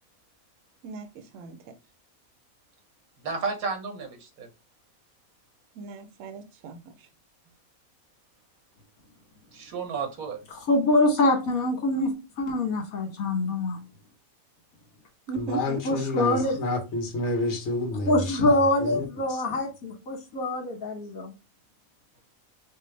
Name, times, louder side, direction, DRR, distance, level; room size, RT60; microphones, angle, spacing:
voice 1, 0.8-1.7 5.7-7.1 15.3-16.0, right 5 dB, 70° right, 1.0 m, -37 dB
voice 2, 3.2-4.5 9.5-10.4, right 5 dB, 90° right, 1.5 m, -32 dB
voice 3, 10.5-12.1 12.4-13.8 15.8-16.6 18.1-21.3, left 2 dB, 75° left, 1.7 m, -24 dB
voice 4, 15.3-19.4, left 2 dB, 55° left, 1.3 m, -30 dB
4.6 x 2.2 x 3.2 m
omnidirectional pair, 1.5 m